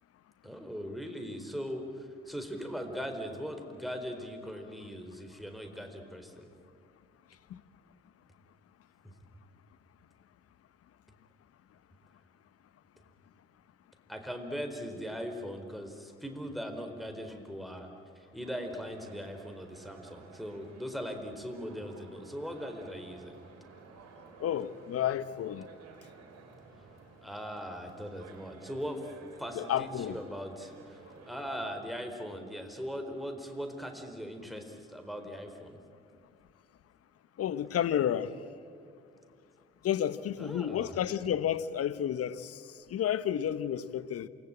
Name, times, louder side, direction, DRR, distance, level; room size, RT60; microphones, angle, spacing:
voice 1, 0.4-6.5 14.1-17.9 18.3-23.4 27.2-29.0 29.4-35.8 40.4-41.0, equal, ahead, 4.3 m, -40 dB
sound 1, 18.4-31.8, right 5 dB, 60° right, 3.6 m, -54 dB
voice 2, 24.4-25.7 29.5-30.2 37.4-38.3 39.8-44.3, left 10 dB, 55° left, 1.1 m, -31 dB
28.0 x 20.5 x 8.9 m
hypercardioid pair, 45°, 29 cm